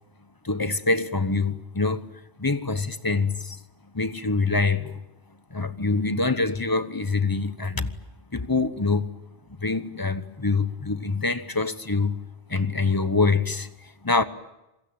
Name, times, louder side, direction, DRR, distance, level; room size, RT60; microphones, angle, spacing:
voice 1, 0.4-2.1 2.4-3.6 3.9-5.0 5.5-7.9 8.3-9.1 9.6-12.2 12.5-13.7 14.0-14.2, left 3 dB, 20° left, 1.0 m, -25 dB
27.0 x 22.0 x 8.8 m
omnidirectional pair, 1.2 m